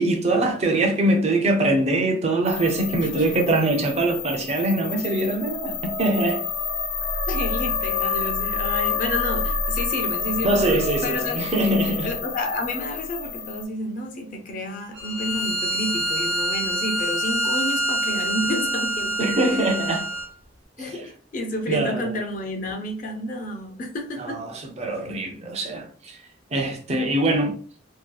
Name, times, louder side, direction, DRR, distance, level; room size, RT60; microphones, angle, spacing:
voice 1, 0.0-6.4 10.4-12.1 19.2-20.1 20.8-21.0 21.7-22.1 24.2-26.2 26.5-27.6, right 2 dB, 35° right, 0.5 m, -23 dB
sound 1, 2.4-13.6, left 5 dB, 90° left, 0.7 m, -28 dB
voice 2, 7.3-11.4 12.0-19.8 20.8-24.4, left 1 dB, 45° left, 0.4 m, -30 dB
Bowed string instrument, 15.0-20.3, right 1 dB, 90° right, 0.7 m, -26 dB
2.7 x 2.2 x 2.3 m
head